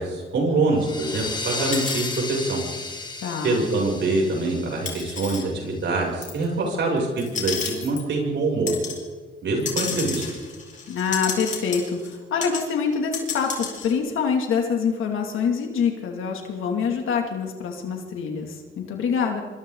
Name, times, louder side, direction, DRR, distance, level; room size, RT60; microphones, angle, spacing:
voice 1, 0.0-2.6 3.4-7.5 7.8-8.7 9.4-10.2, right 3 dB, 65° right, -1 dB, 7.5 m, -24 dB
sound 1, 0.8-6.1, left 3 dB, 20° left, 2.0 m, -34 dB
sound 2, 1.7-2.2 3.3-3.4 4.8-5.4 6.2-6.4 7.2-8.0 8.7-9.0 9.6-12.2 12.4-12.6 12.9-13.9, left 5 dB, 40° left, 4.6 m, -32 dB
voice 2, 3.2-3.6 10.9-19.4, left 6 dB, 80° left, 2 dB, 2.8 m, -25 dB
26.5 x 25.0 x 4.0 m, 1.4 s
cardioid pair, 130°, 20 cm